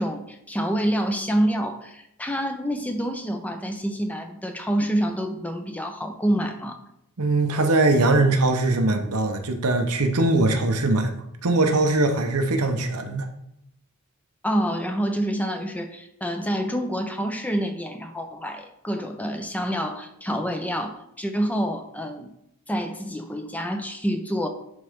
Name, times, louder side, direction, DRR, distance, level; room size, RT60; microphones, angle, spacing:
voice 1, 0.0-6.8 14.4-22.3 22.7-24.5, equal, 5° left, 6 dB, 0.6 m, -27 dB
voice 2, 7.2-13.3, right 2 dB, 85° right, 5 dB, 1.0 m, -21 dB
11.0 x 4.0 x 3.6 m, 0.78 s
head